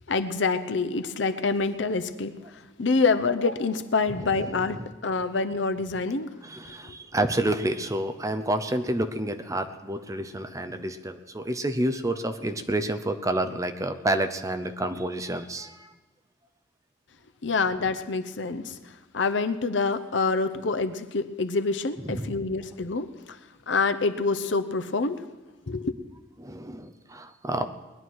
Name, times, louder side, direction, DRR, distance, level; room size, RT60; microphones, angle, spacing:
voice 1, 0.1-2.4 2.8-6.3 17.4-18.8 19.1-23.1 23.7-25.2 25.7-25.9, left 4 dB, 70° left, 9 dB, 0.8 m, -26 dB
voice 2, 4.2-4.9 6.4-15.9 22.0-22.4 26.4-27.6, right 1 dB, 15° right, 9 dB, 0.7 m, -29 dB
20.5 x 11.0 x 4.7 m, 1.2 s
head